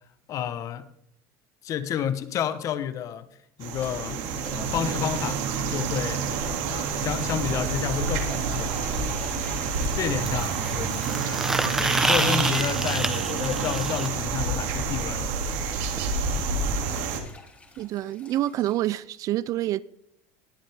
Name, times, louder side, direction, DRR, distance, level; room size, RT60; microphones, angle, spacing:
voice 1, 0.3-0.9 1.6-3.3 3.6-4.2 4.5-5.4 5.7-6.2 6.7-8.7 9.9-15.3, left 9 dB, 40° left, 1.1 m, -30 dB
sound 1, 3.6-17.2, right 5 dB, 65° right, 2.5 m, -28 dB
sound 2, 3.7-18.8, left 2 dB, 15° left, 2.6 m, -46 dB
sound 3, 8.2-8.3 10.2-14.1 16.0-16.1 16.4-16.5 16.7-16.9 17.8-17.9, right 1 dB, 5° right, 0.9 m, -28 dB
voice 2, 17.8-19.8, right 14 dB, 40° right, 0.4 m, -27 dB
20.0 x 7.5 x 3.5 m
cardioid pair, 150°, 9 cm